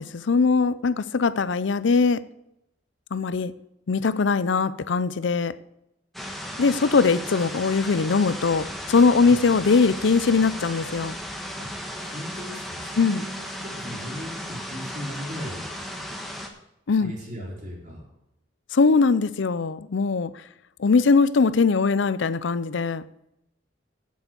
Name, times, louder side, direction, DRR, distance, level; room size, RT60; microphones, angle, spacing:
voice 1, 0.0-2.2 3.1-3.5 3.9-5.5 6.6-11.2 13.0-13.2 16.9-17.1 18.7-20.3 20.8-23.0, left 4 dB, 80° left, 17 dB, 0.5 m, -21 dB
sound 1, 6.1-16.5, equal, ahead, 1.3 m, -35 dB
voice 2, 11.6-15.7 17.0-18.0, equal, 45° right, -8 dB, 3.7 m, -38 dB
8.5 x 8.0 x 8.0 m, 0.84 s
head